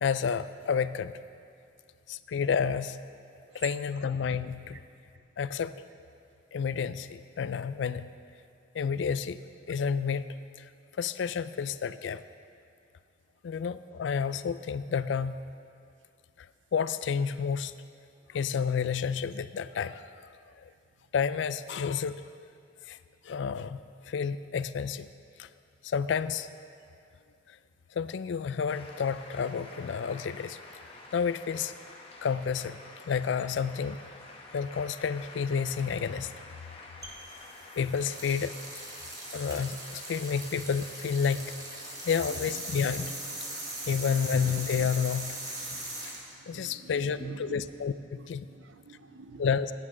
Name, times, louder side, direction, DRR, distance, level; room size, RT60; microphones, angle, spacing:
voice 1, 0.0-1.1 2.1-3.0 3.5-4.8 5.4-5.7 6.5-8.1 8.7-9.4 9.7-10.2 11.0-12.2 13.4-15.3 16.7-17.7 18.3-20.0 21.1-22.2 22.9-23.0 23.2-23.8 24.1-25.1 25.4-25.5 25.8-26.5 28.0-30.6 31.1-31.7 32.2-32.8 33.1-34.0 34.5-36.3 37.8-38.5 39.3-41.5 42.1-43.1 43.9-45.4 46.5-48.5 49.4-49.7, left 6 dB, 75° left, 14 dB, 0.3 m, -30 dB
sound 1, 28.7-46.2, left 2 dB, 30° left, 1.0 m, -49 dB
sound 2, 37.0-47.2, right 2 dB, 20° right, 1.2 m, -40 dB
voice 2, 46.4-47.6 48.2-49.4, right 4 dB, 85° right, 8 dB, 0.7 m, -47 dB
15.5 x 8.9 x 3.7 m, 2.4 s
head